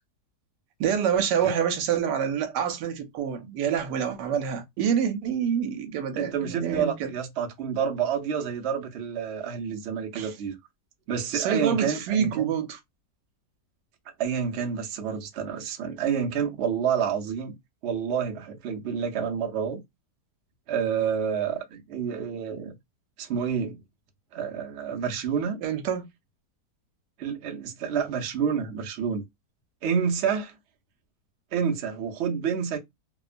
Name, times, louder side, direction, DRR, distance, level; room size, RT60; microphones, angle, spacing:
voice 1, 0.8-7.1 10.1-10.3 11.3-12.8 25.6-26.0, right 8 dB, 85° right, 1.2 m, -27 dB
voice 2, 6.2-10.6 11.1-12.5 14.2-17.5 17.8-19.8 20.7-22.8 23.2-23.8 24.3-25.6 27.2-29.2 29.8-30.6 31.5-32.8, right 7 dB, 60° right, 0.7 m, -28 dB
2.8 x 2.1 x 2.4 m
omnidirectional pair, 1.8 m